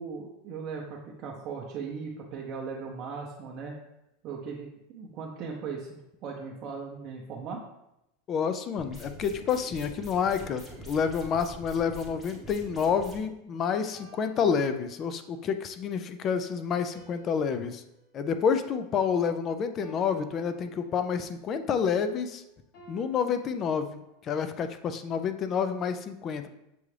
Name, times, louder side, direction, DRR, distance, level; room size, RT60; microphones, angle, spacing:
voice 1, 0.0-3.7 4.2-7.6, right 5 dB, 40° right, -2 dB, 0.6 m, -38 dB
voice 2, 8.3-17.8 18.1-22.4 22.9-26.5, left 6 dB, 30° left, 9 dB, 0.3 m, -29 dB
sound 1, 8.8-13.2, equal, 10° left, 0.9 m, -45 dB
sound 2, 11.0-12.4 13.9-15.3 16.9-19.3 19.8-21.3 22.7-24.3, right 1 dB, 55° left, 1.4 m, -54 dB
6.7 x 2.4 x 3.2 m, 0.86 s
supercardioid pair, 140°, 0 cm